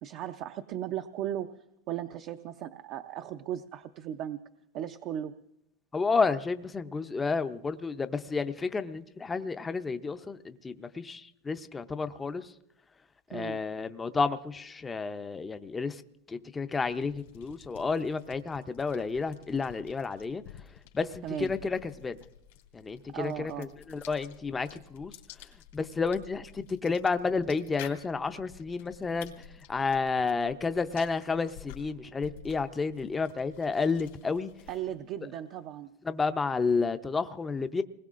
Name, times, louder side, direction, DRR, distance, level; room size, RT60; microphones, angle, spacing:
voice 1, 0.0-4.4 4.7-5.3 13.3-13.6 21.2-21.5 23.1-23.7 34.7-35.9, right 11 dB, 45° right, 7 dB, 0.5 m, -36 dB
voice 2, 5.9-12.5 13.3-16.0 16.3-20.4 20.9-22.2 22.7-25.1 25.7-34.5 36.1-37.8, left 4 dB, 15° left, 10 dB, 0.5 m, -31 dB
sound 1, 16.8-35.0, left 11 dB, 85° left, 2.3 m, -52 dB
26.5 x 20.0 x 2.5 m, 0.81 s
supercardioid pair, 145°, 0 cm